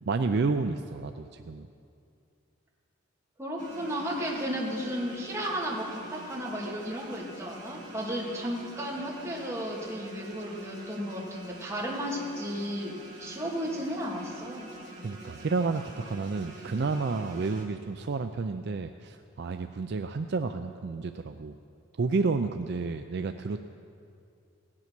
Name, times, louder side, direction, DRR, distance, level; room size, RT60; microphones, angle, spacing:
voice 1, 0.0-1.7 15.0-21.5 22.0-23.6, right 4 dB, 50° right, 7 dB, 0.4 m, -30 dB
voice 2, 3.4-14.6, equal, 15° right, -4 dB, 2.3 m, -34 dB
sound 1, 3.6-17.6, right 1 dB, 35° right, 2.4 m, -46 dB
17.5 x 9.9 x 6.0 m, 2.5 s
head